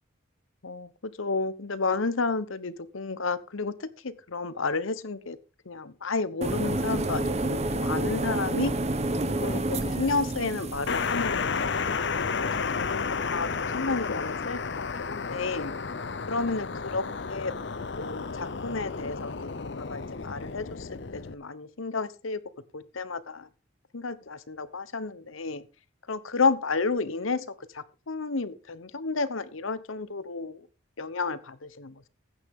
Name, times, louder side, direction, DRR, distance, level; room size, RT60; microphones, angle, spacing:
voice 1, 0.6-5.4 5.7-8.7 9.4-11.7 12.2-15.7 16.3-17.5 18.0-22.4 22.7-23.5 23.9-25.6 26.1-27.4 27.7-30.6 31.0-32.1, left 4 dB, 90° left, 15 dB, 1.0 m, -31 dB
sound 1, 6.4-11.2, right 2 dB, 35° right, 1.0 m, -29 dB
sound 2, 10.9-21.3, left 5 dB, 60° left, 0.7 m, -32 dB
15.0 x 9.8 x 3.7 m, 0.30 s
head